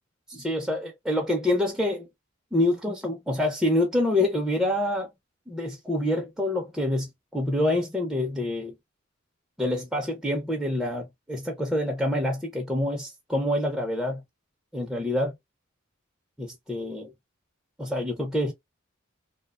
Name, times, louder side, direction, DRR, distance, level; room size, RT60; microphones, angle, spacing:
voice 1, 0.3-2.1 2.5-5.1 5.5-8.7 9.6-14.2 14.7-15.3 16.4-17.1 17.8-18.5, left 1 dB, ahead, 0.5 m, -26 dB
2.8 x 2.1 x 2.3 m
head